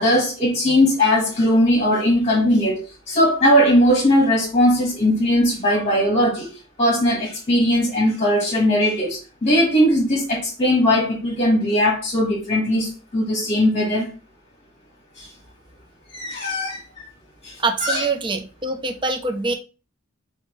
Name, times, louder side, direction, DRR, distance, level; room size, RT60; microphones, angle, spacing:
voice 1, 0.0-6.5 6.8-14.1 15.2-15.3 16.1-17.1 17.4-18.0, left 1 dB, 30° left, -2 dB, 1.4 m, -19 dB
voice 2, 17.6-19.5, right 3 dB, 25° right, 6 dB, 0.5 m, -24 dB
5.8 x 2.8 x 3.1 m, 0.33 s
head